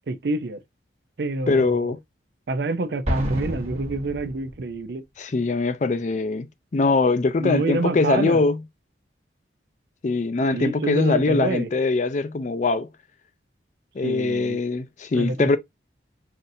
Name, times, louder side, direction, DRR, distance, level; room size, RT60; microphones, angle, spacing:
voice 1, 0.1-0.6 1.2-1.9 2.5-5.0 7.4-8.4 10.5-11.7 14.0-14.6 15.1-15.6, right 2 dB, 60° right, 0.5 m, -27 dB
voice 2, 1.5-2.0 5.2-6.5 6.7-8.6 10.0-12.9 14.0-15.6, left 3 dB, 40° left, 0.4 m, -22 dB
Explosion, 3.0-4.8, equal, 35° right, 1.1 m, -29 dB
5.6 x 2.6 x 2.6 m
head